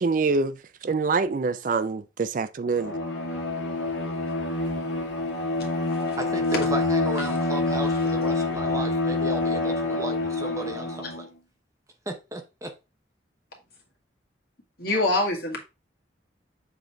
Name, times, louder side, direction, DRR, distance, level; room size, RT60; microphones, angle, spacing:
voice 1, 0.0-2.9, right 4 dB, 45° right, 0.4 m, -25 dB
Bowed string instrument, 2.8-11.3, left 2 dB, 80° left, 1.5 m, -27 dB
voice 2, 6.2-11.1 12.1-12.7, right 2 dB, 15° right, 0.7 m, -35 dB
voice 3, 14.8-15.6, left 2 dB, 55° left, 1.9 m, -26 dB
7.0 x 3.9 x 3.5 m
head